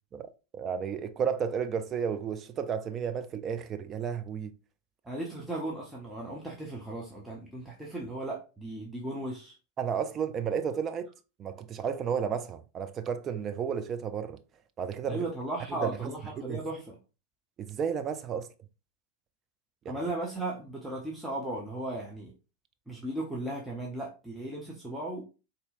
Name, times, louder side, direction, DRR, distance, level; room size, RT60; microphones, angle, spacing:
voice 1, 0.1-4.5 9.8-11.1 11.4-14.4 14.8-15.3 15.7-15.9 16.4-16.6 17.6-18.5 19.9-20.0, right 7 dB, 30° right, 0.4 m, -32 dB
voice 2, 5.0-9.5 15.0-17.0 19.9-22.3 22.9-25.2, right 1 dB, 5° right, 0.8 m, -36 dB
4.1 x 2.7 x 2.4 m
figure-of-eight pair, 90°, 0 cm